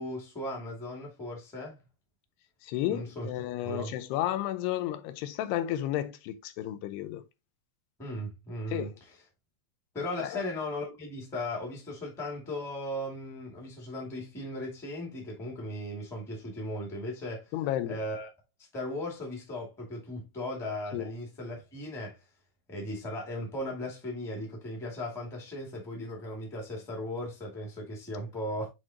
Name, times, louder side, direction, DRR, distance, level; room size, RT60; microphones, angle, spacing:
voice 1, 0.0-1.8 2.9-3.3 3.6-3.9 8.0-8.9 9.9-17.5 17.9-18.3 18.7-22.2 22.7-28.7, left 1 dB, ahead, 1.0 m, -37 dB
voice 2, 2.6-7.2 8.7-8.9 10.2-10.4 17.5-18.0 20.9-21.1, left 13 dB, 90° left, 2.8 m, -32 dB
7.6 x 4.4 x 2.9 m
omnidirectional pair, 4.6 m